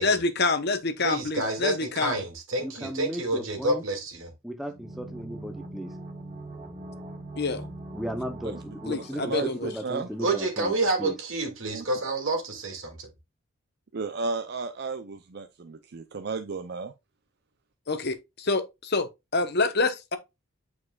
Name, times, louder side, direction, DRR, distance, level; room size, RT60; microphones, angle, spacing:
voice 1, 0.0-2.2 7.4-7.7 8.9-9.7 17.9-20.2, left 3 dB, 50° left, 0.9 m, -27 dB
voice 2, 1.0-4.3 10.2-13.1, right 2 dB, 70° right, 2.4 m, -29 dB
voice 3, 2.6-3.8 4.4-5.9 7.9-10.7 11.0-11.2, equal, ahead, 0.8 m, -36 dB
sound 1, 4.7-10.4 10.6-10.7, right 2 dB, 35° right, 1.0 m, -42 dB
voice 4, 8.9-10.1 11.7-11.8 13.9-16.9, right 4 dB, 50° right, 0.5 m, -33 dB
8.5 x 4.8 x 2.4 m
head